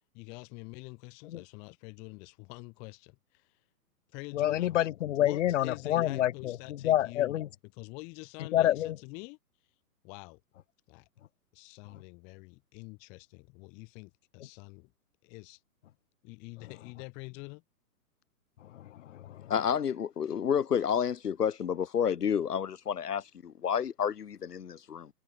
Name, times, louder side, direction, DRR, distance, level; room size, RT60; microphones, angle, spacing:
voice 1, 0.1-3.6 4.1-4.7 5.2-7.4 7.7-9.4 10.0-10.4 10.9-11.1 11.5-14.9 15.2-15.6 16.2-17.6, left 30 dB, 5° left, 0.4 m, -46 dB
voice 2, 4.3-7.5 8.5-9.0 18.6-19.5, left 12 dB, 50° left, 5.3 m, -28 dB
voice 3, 19.5-25.1, left 8 dB, 80° left, 2.3 m, -30 dB
hypercardioid pair, 145°, 46 cm